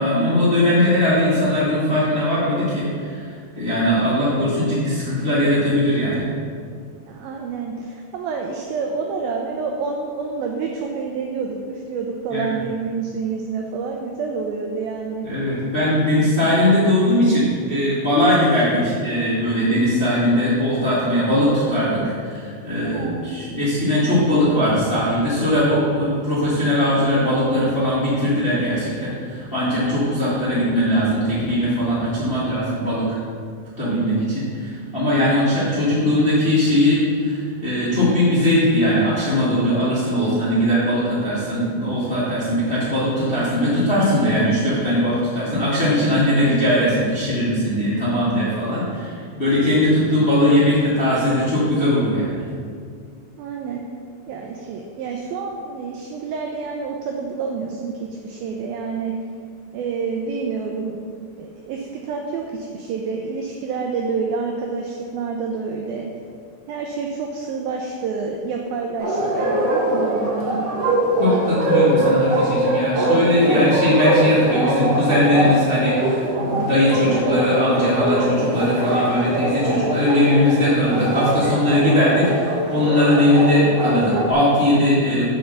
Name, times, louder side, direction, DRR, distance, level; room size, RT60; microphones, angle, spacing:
voice 1, 0.0-3.2 3.5-6.3 12.3-12.5 15.2-33.0 33.8-52.4 71.2-85.3, left 1 dB, 80° left, -10 dB, 0.5 m, -19 dB
voice 2, 7.1-15.3 22.8-23.3 53.4-53.9 54.3-59.1 59.7-61.0 61.4-66.1 66.7-70.7, right 5 dB, 90° right, 1 dB, 2.1 m, -28 dB
Bark, 69.0-84.3, right 1 dB, 60° right, 2.8 m, -22 dB
6.6 x 5.5 x 6.7 m, 2.2 s
omnidirectional pair, 5.0 m